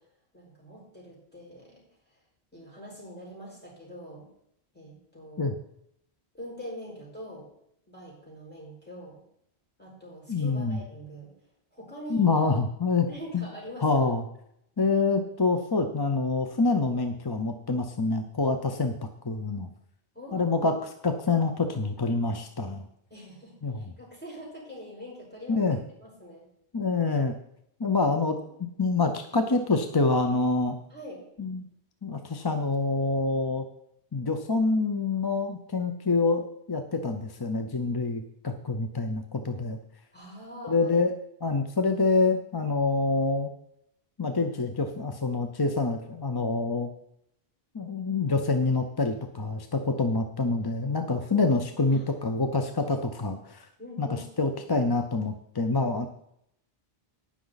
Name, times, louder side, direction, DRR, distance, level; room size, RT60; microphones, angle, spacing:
voice 1, 0.3-1.8 2.1-2.2 2.5-4.3 4.7-5.6 6.3-7.5 7.9-9.2 9.8-11.3 11.7-12.4 13.1-14.1 20.1-20.9 23.1-25.7 26.0-26.5 27.8-28.5 30.9-31.2 40.1-41.0 51.9-52.8 53.8-54.6, equal, 10° left, -5 dB, 5.3 m, -44 dB
voice 2, 10.3-10.8 12.1-13.1 13.3-13.4 13.8-14.2 14.8-18.9 19.2-19.7 20.3-20.7 21.0-22.8 23.6-23.8 25.5-25.8 26.7-27.3 27.8-28.4 28.8-30.8 31.4-31.6 32.0-33.7 34.1-39.8 40.6-41.1 41.4-43.5 44.2-46.9 47.7-53.7 54.0-56.1, left 3 dB, 25° left, 6 dB, 0.6 m, -26 dB
18.5 x 6.2 x 4.1 m, 0.75 s
omnidirectional pair, 1.1 m